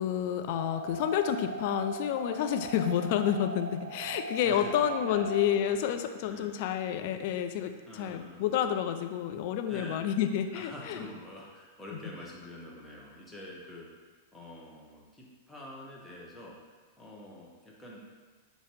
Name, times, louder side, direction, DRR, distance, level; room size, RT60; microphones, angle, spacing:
voice 1, 0.0-11.1, left 9 dB, 50° left, 7 dB, 0.3 m, -29 dB
sound 1, 0.5-5.5, right 3 dB, 75° right, 0.4 m, -40 dB
voice 2, 4.4-5.3 6.2-6.6 7.9-8.5 9.7-10.0 10.5-16.6 17.0-18.2, left 1 dB, 10° left, -4 dB, 1.0 m, -46 dB
6.3 x 2.7 x 3.0 m, 1.5 s
figure-of-eight pair, 95°, 0 cm